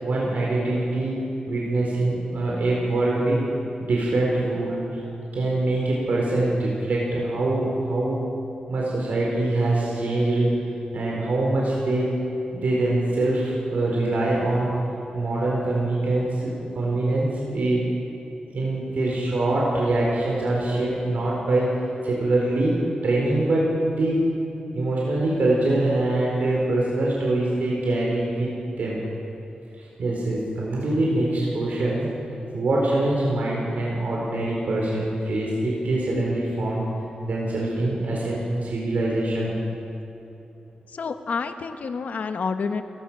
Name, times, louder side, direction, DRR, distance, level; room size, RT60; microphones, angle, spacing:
voice 1, 0.0-3.4 3.8-4.8 5.3-8.2 8.7-10.5 10.9-12.1 12.5-14.7 15.1-17.8 18.5-21.7 22.0-22.8 23.0-24.2 24.7-28.5 28.8-29.0 30.0-32.1 32.5-36.9 37.3-39.6, right 2 dB, 70° right, -4 dB, 4.4 m, -24 dB
voice 2, 40.9-42.8, left 5 dB, 70° left, 8 dB, 1.1 m, -28 dB
29.0 x 16.5 x 6.3 m, 2.8 s
wide cardioid pair, 150°, 3 cm